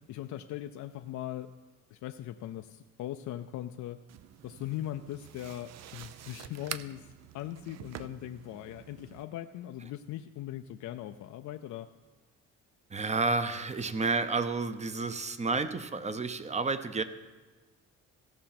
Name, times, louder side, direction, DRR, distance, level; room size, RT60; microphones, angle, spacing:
voice 1, 0.1-1.5 1.9-4.0 4.4-11.9, left 13 dB, 75° left, 7 dB, 0.5 m, -40 dB
sound 1, 4.1-9.2, right 11 dB, 60° right, 0.5 m, -46 dB
voice 2, 12.9-17.0, right 4 dB, 20° right, 11 dB, 0.7 m, -30 dB
15.5 x 5.5 x 5.9 m, 1.3 s
cardioid pair, 90°, 30 cm